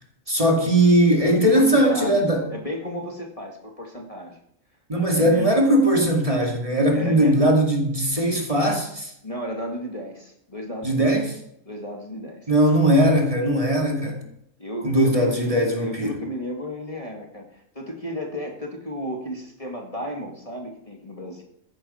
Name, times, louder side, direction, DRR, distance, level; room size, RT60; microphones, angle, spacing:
voice 1, 0.3-2.4 4.9-9.1 10.8-11.3 12.5-14.2 14.8-16.2, right 1 dB, 25° right, 1 dB, 2.4 m, -19 dB
voice 2, 1.5-4.4 5.0-5.5 6.9-7.4 9.2-11.2 11.7-12.5 14.6-21.4, equal, 25° left, 0 dB, 2.1 m, -34 dB
14.5 x 11.5 x 4.4 m, 0.72 s
omnidirectional pair, 1.4 m